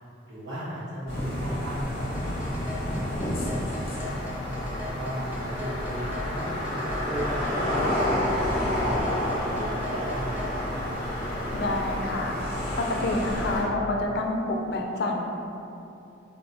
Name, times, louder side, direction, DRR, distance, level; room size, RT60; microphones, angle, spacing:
voice 1, 0.3-4.5 5.0-10.9, equal, 75° right, -11 dB, 1.2 m, -37 dB
sound 1, 1.1-13.6, left 1 dB, 30° left, 0.8 m, -29 dB
sound 2, 2.1-10.5, left 2 dB, 10° right, 0.4 m, -40 dB
voice 2, 11.5-12.3 12.8-15.2, left 2 dB, 55° left, 2 dB, 0.4 m, -28 dB
4.1 x 2.3 x 4.0 m, 2.7 s
head